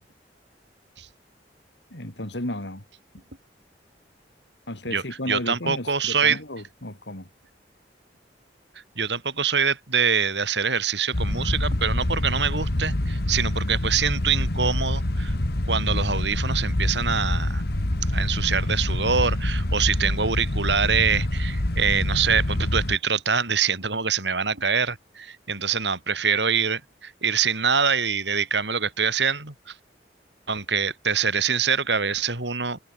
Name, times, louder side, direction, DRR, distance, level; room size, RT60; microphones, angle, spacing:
voice 1, 1.9-2.8 3.1-3.2 4.7-7.3, left 1 dB, 75° left, 4.9 m, -33 dB
voice 2, 4.9-6.4 9.0-15.4 15.7-17.6 18.1-29.7 30.5-32.8, right 6 dB, 80° right, 5.7 m, -25 dB
sound 1, 11.1-23.0, left 1 dB, 60° left, 1.8 m, -26 dB
head